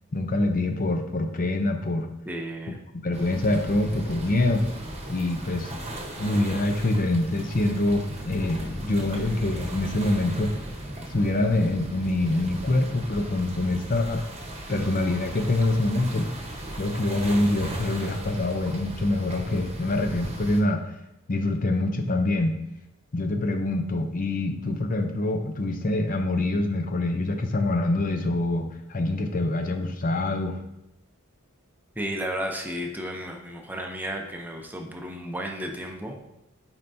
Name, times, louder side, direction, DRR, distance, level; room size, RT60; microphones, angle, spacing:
voice 1, 0.1-2.1 3.0-4.6 5.1-5.8 6.2-10.5 11.1-14.2 14.7-16.3 16.8-20.9 21.3-22.6 23.1-30.6, left 2 dB, 40° left, 5 dB, 0.6 m, -25 dB
voice 2, 2.3-2.8 32.0-36.2, equal, 10° right, 2 dB, 0.6 m, -33 dB
sound 1, 3.1-20.6, right 1 dB, 30° right, 1.0 m, -37 dB
8.7 x 4.4 x 2.7 m, 0.83 s
head